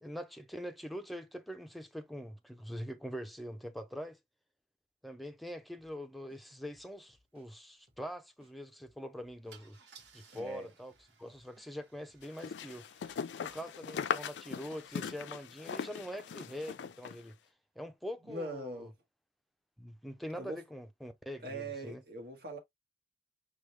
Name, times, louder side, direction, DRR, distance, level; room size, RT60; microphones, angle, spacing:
voice 1, 0.0-4.2 5.0-9.8 10.1-10.9 11.2-17.4 17.8-18.9 19.8-22.0, equal, ahead, 0.5 m, -44 dB
sound 1, 5.8-5.9 6.3-7.5 7.9-8.0 8.4-9.6 10.0-10.2 10.5-11.7 12.1-12.3 12.6-13.8, right 1 dB, 35° right, 1.4 m, -69 dB
Car / Engine starting / Idling, 6.9-7.0 7.3-7.5 9.5-15.2, right 6 dB, 85° right, 1.2 m, -63 dB
voice 2, 10.3-10.7 18.3-18.9 20.3-20.6 21.4-22.6, right 1 dB, 60° right, 1.4 m, -41 dB
sound 2, 12.2-17.2, left 7 dB, 80° left, 0.4 m, -39 dB
5.0 x 2.4 x 3.2 m
head